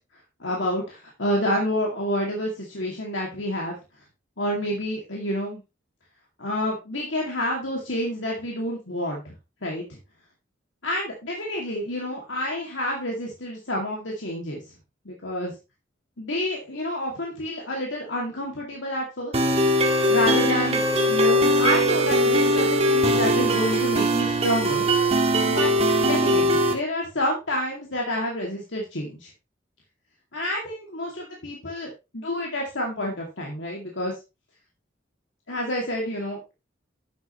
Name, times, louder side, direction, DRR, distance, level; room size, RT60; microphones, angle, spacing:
voice 1, 0.4-3.8 4.4-5.6 6.4-9.3 9.6-10.0 10.8-14.6 15.1-15.5 16.2-19.4 20.1-20.8 21.1-24.9 25.5-25.7 26.0-29.3 30.3-34.1 35.5-36.5, left 1 dB, 80° left, -1 dB, 2.4 m, -28 dB
sound 1, 19.3-26.7, equal, 35° right, 1.8 m, -21 dB
11.0 x 8.0 x 3.1 m, 0.26 s
head